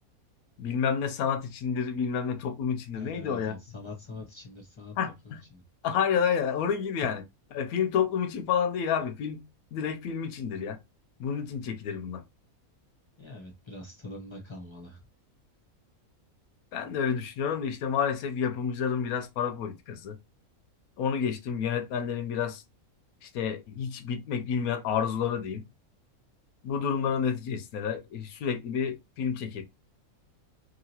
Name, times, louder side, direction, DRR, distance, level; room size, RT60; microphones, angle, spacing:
voice 1, 0.6-3.6 5.0-5.4 5.8-7.2 7.5-9.4 9.7-10.8 11.2-12.2 16.7-20.2 21.0-22.6 23.2-25.6 26.6-29.6, left 7 dB, 90° left, 1.1 m, -29 dB
voice 2, 2.9-4.9 5.2-5.6 13.2-15.0, left 2 dB, 25° left, 0.8 m, -44 dB
2.9 x 2.9 x 2.8 m
omnidirectional pair, 1.5 m